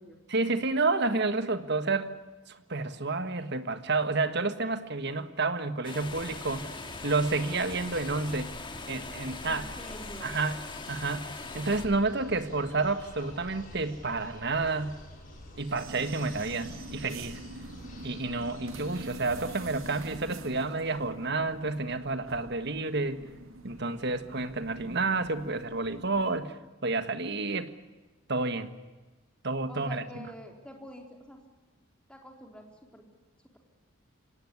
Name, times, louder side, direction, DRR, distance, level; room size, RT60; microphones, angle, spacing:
voice 1, 0.3-2.1 2.5-6.7 7.0-8.5 8.9-9.7 10.2-10.6 10.9-11.3 11.5-15.0 15.6-17.4 18.0-23.2 23.6-26.6 26.8-27.7 28.3-28.7 29.4-30.0, right 3 dB, 55° right, 10 dB, 1.6 m, -30 dB
sound 1, 5.8-11.9, left 3 dB, 25° left, 1.8 m, -42 dB
sound 2, 6.0-20.1, left 1 dB, 40° left, 5.6 m, -48 dB
voice 2, 9.4-10.3 12.1-12.5 29.7-31.4 32.1-32.6 32.9-33.0, equal, 5° left, 2 dB, 3.7 m, -47 dB
sound 3, 15.7-26.4, right 2 dB, 80° right, 2.1 m, -45 dB
25.5 x 18.5 x 9.7 m, 1.2 s
head